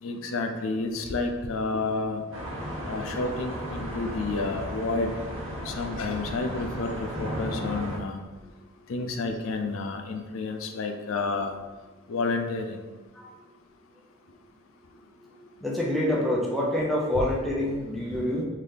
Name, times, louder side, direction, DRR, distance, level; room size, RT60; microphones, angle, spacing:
voice 1, 0.0-2.2 2.8-5.1 5.7-8.2 8.9-11.6 12.1-12.9, left 3 dB, 85° left, 4 dB, 0.4 m, -30 dB
sound 1, 2.3-8.0, equal, 85° right, 0.9 m, -35 dB
voice 2, 15.6-18.4, left 1 dB, ahead, -5 dB, 0.6 m, -27 dB
3.3 x 2.7 x 3.8 m, 1.3 s
head